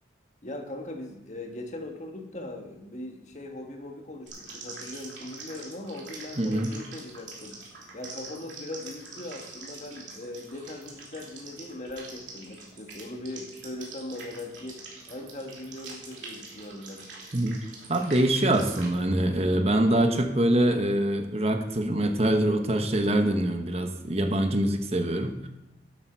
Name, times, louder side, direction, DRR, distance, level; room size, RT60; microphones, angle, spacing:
voice 1, 0.4-7.6 7.9-17.0, left 1 dB, 40° left, 4 dB, 1.5 m, -40 dB
sound 1, 4.3-18.9, right 3 dB, 85° right, 3.1 m, -45 dB
voice 2, 6.4-6.7 17.3-17.6 17.9-25.5, right 1 dB, 35° right, 6 dB, 1.0 m, -24 dB
12.0 x 8.8 x 4.5 m, 0.96 s
head